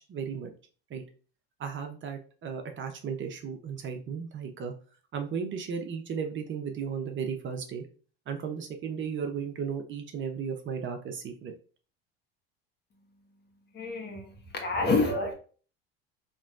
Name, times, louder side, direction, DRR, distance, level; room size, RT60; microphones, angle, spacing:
voice 1, 0.1-0.5 0.9-1.0 1.6-4.7 5.1-7.8 8.3-11.5, right 6 dB, 40° right, 5 dB, 0.8 m, -35 dB
voice 2, 13.7-14.3 14.6-15.3, left 3 dB, 35° left, 3 dB, 1.4 m, -27 dB
4.2 x 3.0 x 2.5 m, 0.39 s
hypercardioid pair, 85°, 31 cm